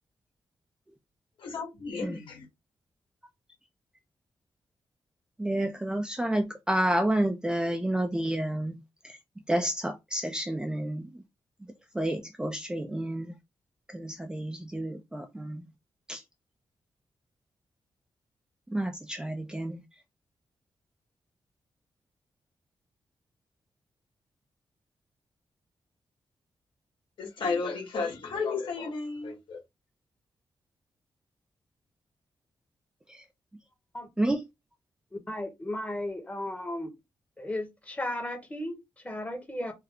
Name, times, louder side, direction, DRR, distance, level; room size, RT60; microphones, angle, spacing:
voice 1, 1.4-2.5 27.2-29.6, left 4 dB, 75° left, 1.8 m, -33 dB
voice 2, 5.4-9.2 9.5-11.1 11.9-13.3 13.9-15.6 16.1-16.2 18.7-19.8 33.1-33.2 34.2-34.4, right 1 dB, 10° right, 0.4 m, -30 dB
voice 3, 35.3-36.9 37.4-39.7, left 1 dB, 15° left, 1.0 m, -35 dB
3.3 x 2.1 x 3.6 m
wide cardioid pair, 155°, 9 cm